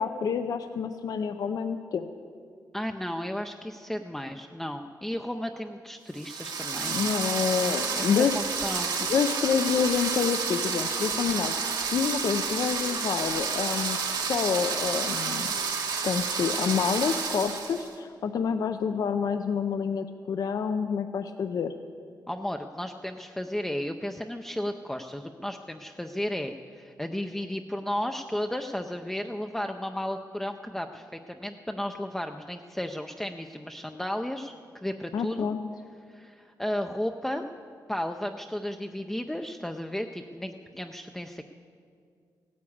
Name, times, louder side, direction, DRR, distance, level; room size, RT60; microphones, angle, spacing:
voice 1, 0.0-2.1 6.6-8.4 9.1-14.0 14.3-15.5 16.0-21.7 35.1-35.6, left 6 dB, 60° left, 8 dB, 0.6 m, -28 dB
voice 2, 2.7-7.2 7.9-8.9 22.3-34.5 34.8-35.5 36.1-37.4 37.9-41.4, left 1 dB, 5° left, 4 dB, 0.5 m, -34 dB
sound 1, 6.1-17.9, right 5 dB, 80° right, 1.9 m, -30 dB
16.5 x 9.5 x 8.6 m, 2.2 s
wide cardioid pair, 150°, 7 cm